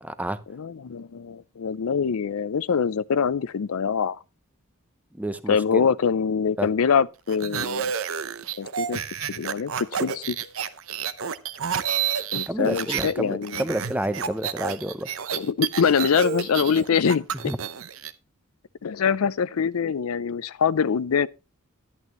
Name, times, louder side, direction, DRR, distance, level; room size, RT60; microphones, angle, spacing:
voice 1, 0.0-0.4 5.2-5.6 6.6-6.7 12.5-15.1 17.5-17.6, right 1 dB, 5° right, 0.6 m, -29 dB
voice 2, 0.5-4.2 5.5-7.9 8.6-9.0 9.3-9.7 10.0-10.4 12.3-13.6 15.3-17.5 18.8-21.3, left 6 dB, 85° left, 0.5 m, -24 dB
sound 1, 7.3-13.1 13.4-18.1, right 7 dB, 75° right, 0.8 m, -30 dB
11.0 x 11.0 x 3.0 m
head